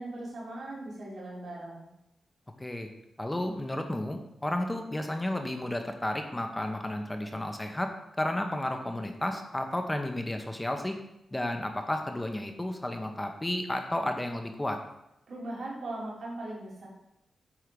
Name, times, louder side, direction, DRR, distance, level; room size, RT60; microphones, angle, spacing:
voice 1, 0.0-1.9 15.3-16.9, right 2 dB, 65° right, -5 dB, 2.7 m, -39 dB
voice 2, 3.2-7.9 8.2-11.0 11.3-14.8, left 1 dB, 15° left, 5 dB, 0.9 m, -32 dB
7.9 x 3.6 x 5.2 m, 0.87 s
cardioid pair, 85°, 0 cm